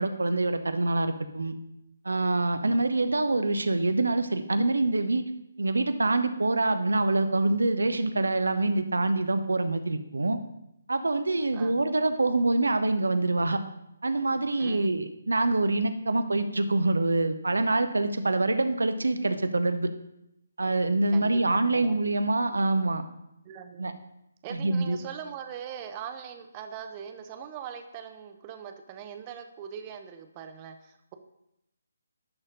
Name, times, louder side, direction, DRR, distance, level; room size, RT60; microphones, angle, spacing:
voice 1, 0.0-1.5 2.0-5.2 5.6-10.4 10.9-13.6 14.0-19.9 20.6-23.0 23.8-23.9 24.5-25.0, right 2 dB, 65° right, 9 dB, 0.6 m, -25 dB
voice 2, 14.6-15.1 21.1-22.0 23.4-24.0 24.4-31.1, right 8 dB, 25° right, 7 dB, 0.7 m, -41 dB
11.5 x 4.2 x 5.1 m, 0.83 s
figure-of-eight pair, 145°, 0 cm